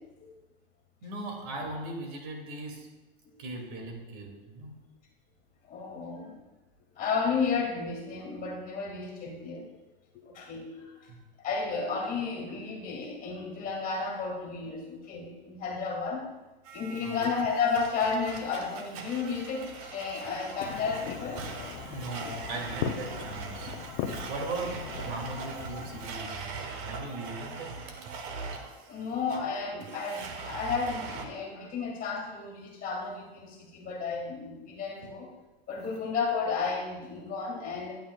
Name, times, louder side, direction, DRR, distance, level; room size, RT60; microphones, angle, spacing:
voice 1, 1.0-2.9 3.4-4.8 11.1-11.2 17.0-17.3 21.8-23.7 24.0-26.4 26.8-28.0 35.0-35.1, right 2 dB, 60° right, 1 dB, 2.5 m, -39 dB
voice 2, 5.7-6.4 7.0-9.7 10.1-11.1 11.4-16.3 16.7-21.5 28.9-35.3 35.7-38.0, left 5 dB, 30° left, 0 dB, 2.1 m, -32 dB
Domestic sounds home sounds, 16.6-31.2, right 4 dB, 45° right, 1.3 m, -41 dB
Fireworks, 20.6-26.1, left 9 dB, 45° left, 0.8 m, -39 dB
11.5 x 9.0 x 2.4 m, 1.1 s
supercardioid pair, 130°, 29 cm